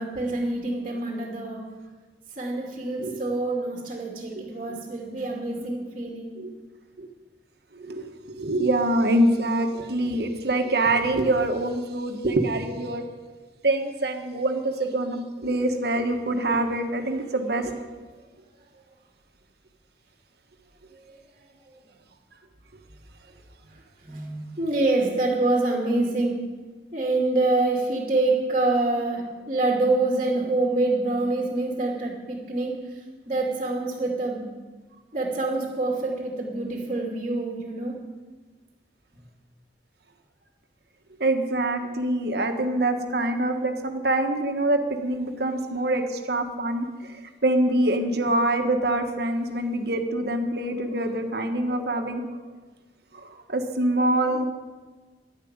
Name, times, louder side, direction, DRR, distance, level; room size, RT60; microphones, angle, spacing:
voice 1, 0.0-1.7 2.4-6.4 21.1-21.2 24.0-26.6 26.9-34.5 35.1-38.0, right 2 dB, 35° right, -1 dB, 2.4 m, -26 dB
voice 2, 7.7-13.1 13.6-17.7 41.2-47.2 47.4-52.2 53.2-54.5, right 1 dB, 60° right, 5 dB, 1.6 m, -25 dB
11.5 x 11.0 x 8.9 m, 1.3 s
head